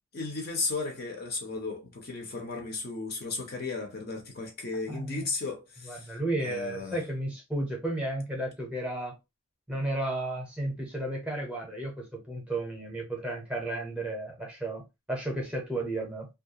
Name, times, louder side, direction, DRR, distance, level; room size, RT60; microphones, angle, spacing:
voice 1, 0.1-6.1 6.4-7.0, left 3 dB, 45° left, 0.6 m, -35 dB
voice 2, 4.9-5.2 5.8-9.1 9.7-14.8 15.1-16.3, right 1 dB, 5° right, 0.7 m, -33 dB
2.3 x 2.2 x 2.6 m
head